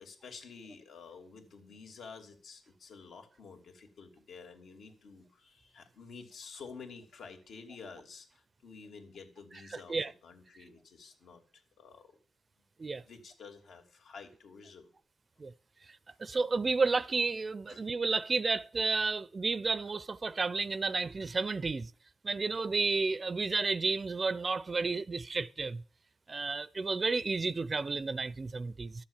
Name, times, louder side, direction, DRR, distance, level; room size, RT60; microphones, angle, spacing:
voice 1, 0.0-12.2 13.0-14.9 17.7-17.8, left 5 dB, 75° left, 2.9 m, -50 dB
voice 2, 16.2-21.9 22.2-25.8 26.3-29.0, right 4 dB, 35° right, 0.5 m, -31 dB
13.0 x 7.3 x 9.0 m
cardioid pair, 105°, 0 cm